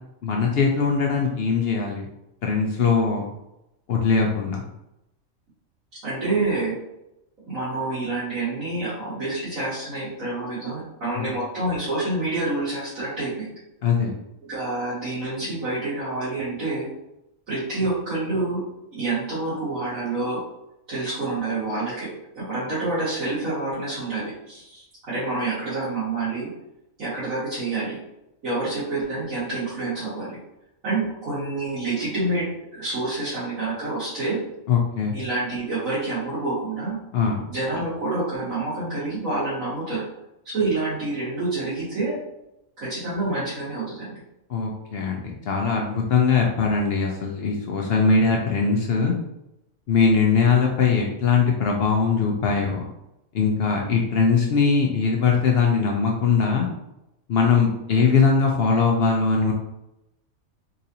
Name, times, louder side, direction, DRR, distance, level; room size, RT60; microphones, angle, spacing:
voice 1, 0.2-2.1 2.4-3.2 3.9-4.6 11.2-11.3 13.8-14.1 34.7-35.1 37.1-37.4 44.5-49.1 49.9-52.9 53.3-56.7 57.3-59.5, left 5 dB, 65° left, 0 dB, 0.6 m, -21 dB
voice 2, 6.0-6.7 7.4-13.5 14.5-16.9 17.5-18.7 18.9-20.4 20.9-26.5 27.0-28.0 28.4-30.4 30.8-34.4 35.1-37.0 37.5-40.0 40.4-42.2 42.8-44.2, right 2 dB, 80° right, -13 dB, 1.8 m, -27 dB
4.0 x 2.6 x 2.7 m, 0.87 s
omnidirectional pair, 1.4 m